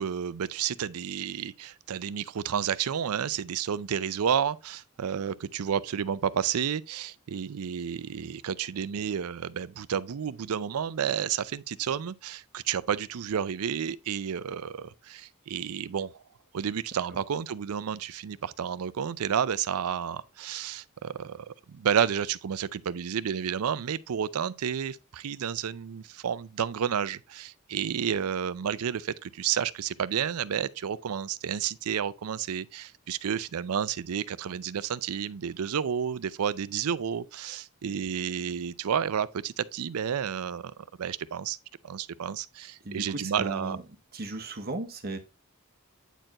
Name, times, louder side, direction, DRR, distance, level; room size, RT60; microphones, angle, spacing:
voice 1, 0.0-16.2 16.5-41.6 41.8-43.8, right 8 dB, 85° right, 0.4 m, -31 dB
voice 2, 42.8-43.8 44.1-45.2, right 2 dB, 45° right, 0.8 m, -36 dB
9.1 x 4.4 x 2.9 m
head